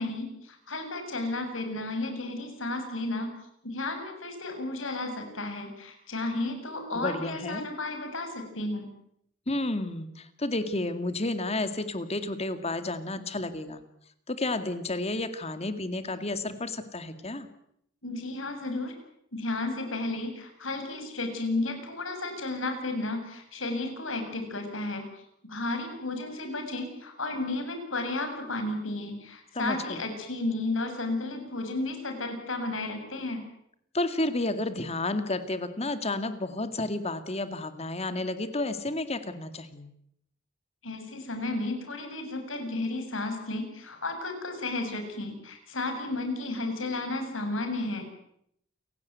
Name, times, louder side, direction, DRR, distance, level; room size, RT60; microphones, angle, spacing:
voice 1, 0.0-3.3 3.6-8.9 18.0-18.9 19.3-25.1 25.5-33.4 40.8-48.1, left 2 dB, 90° left, 5 dB, 7.3 m, -33 dB
voice 2, 6.9-7.6 9.5-13.8 14.3-17.5 29.5-30.0 33.9-39.9, left 2 dB, 35° left, 10 dB, 2.2 m, -31 dB
29.0 x 17.0 x 9.4 m, 0.74 s
head